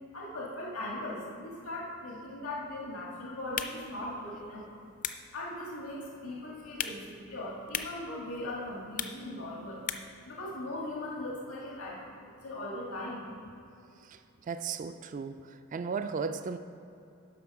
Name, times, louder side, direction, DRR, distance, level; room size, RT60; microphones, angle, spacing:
voice 1, 0.1-4.6 5.3-9.8 10.2-12.0 12.4-13.3, left 1 dB, 85° left, -4 dB, 1.7 m, -39 dB
sound 1, 3.4-10.3, left 8 dB, 40° left, 0.4 m, -41 dB
voice 2, 14.5-15.4 15.7-16.6, right 5 dB, 35° right, 10 dB, 0.3 m, -35 dB
11.0 x 6.1 x 4.7 m, 2.7 s
head